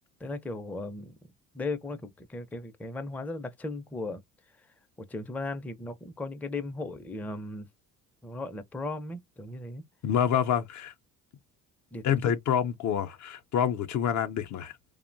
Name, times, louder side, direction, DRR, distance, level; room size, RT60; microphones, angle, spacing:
voice 1, 0.2-1.2 1.5-4.2 5.1-7.7 8.2-9.8 11.9-12.3, left 2 dB, 5° left, 0.4 m, -36 dB
voice 2, 10.0-10.9 12.0-14.7, left 9 dB, 55° left, 0.6 m, -27 dB
2.8 x 2.1 x 2.5 m
supercardioid pair, 80°, 35 cm